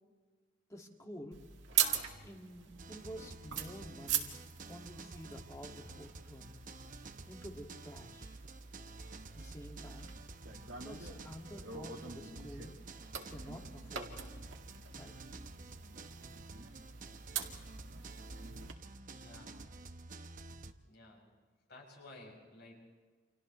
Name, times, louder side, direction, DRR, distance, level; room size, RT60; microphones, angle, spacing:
voice 1, 0.7-1.4 2.2-4.3 4.7-6.6 7.3-8.4 9.3-10.1 10.8-12.8 13.3-14.1 14.9-15.1, equal, 15° left, 1 dB, 2.0 m, -50 dB
sound 1, 1.3-18.7, right 9 dB, 70° right, 2.1 m, -42 dB
sound 2, 2.8-20.7, right 3 dB, 40° right, 0.9 m, -50 dB
voice 2, 19.1-19.6 20.8-21.2 21.7-22.7, left 2 dB, 60° left, 0 dB, 7.7 m, -54 dB
30.0 x 27.5 x 3.2 m, 1.4 s
head